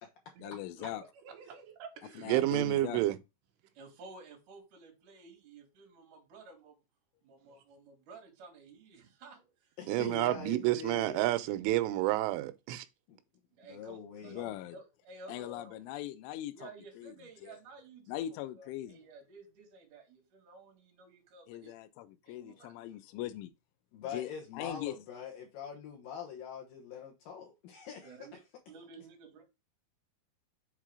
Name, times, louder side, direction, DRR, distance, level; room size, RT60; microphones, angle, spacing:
voice 1, 0.4-1.0 2.2-3.0 14.3-14.8 15.3-16.7 17.0-17.1 17.4-17.6 18.1-19.0 21.5-23.5 24.1-24.9, left 13 dB, 85° left, 3.0 m, -40 dB
voice 2, 0.9-2.5 3.6-3.7 7.4-7.6, right 6 dB, 70° right, 3.4 m, -51 dB
voice 3, 2.3-3.2 9.9-12.9, right 16 dB, 90° right, 3.2 m, -29 dB
voice 4, 3.7-6.8 7.2-10.1 13.5-15.8 16.5-21.7 22.2-23.0 28.0-28.4 28.7-29.4, right 3 dB, 50° right, 3.7 m, -53 dB
voice 5, 9.8-11.3 13.1-13.2 13.7-14.5 23.9-28.2, left 7 dB, 70° left, 2.2 m, -44 dB
7.4 x 3.8 x 4.8 m
omnidirectional pair, 5.4 m